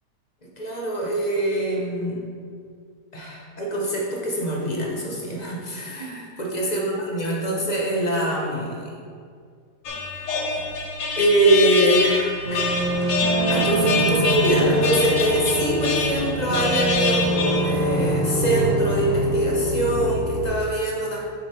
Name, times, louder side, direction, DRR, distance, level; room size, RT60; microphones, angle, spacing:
voice 1, 0.6-2.2 3.1-9.0 10.4-10.5 11.2-12.7 13.5-21.2, right 1 dB, 35° left, -3 dB, 0.7 m, -24 dB
sound 1, 9.9-17.6, left 4 dB, 85° left, 1.5 m, -26 dB
sound 2, 12.5-20.5, right 1 dB, 55° right, 1.0 m, -24 dB
6.4 x 5.9 x 3.4 m, 2.2 s
omnidirectional pair, 1.8 m